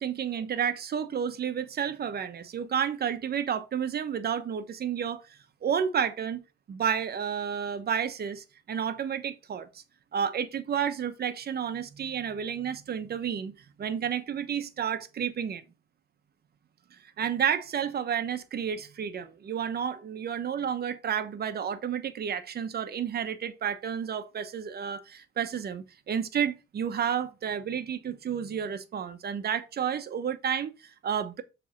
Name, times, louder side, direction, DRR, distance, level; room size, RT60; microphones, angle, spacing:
voice 1, 0.0-5.2 5.6-9.8 10.1-15.6 16.9-31.4, right 8 dB, 50° right, 1.1 m, -31 dB
7.2 x 3.6 x 5.9 m
cardioid pair, 90°, 20 cm